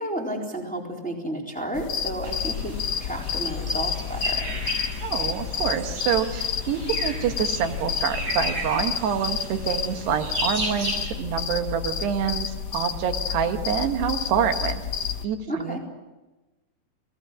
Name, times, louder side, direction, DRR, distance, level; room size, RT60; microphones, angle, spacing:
voice 1, 0.0-4.5 15.5-15.8, right 1 dB, ahead, 0 dB, 3.4 m, -31 dB
sound 1, 1.7-15.3, left 8 dB, 65° left, 1.5 m, -30 dB
sound 2, 2.2-11.1, right 1 dB, 45° right, 7.8 m, -35 dB
voice 2, 5.0-15.8, right 8 dB, 80° right, 7 dB, 3.5 m, -27 dB
29.5 x 19.5 x 7.5 m, 1.1 s
omnidirectional pair, 4.7 m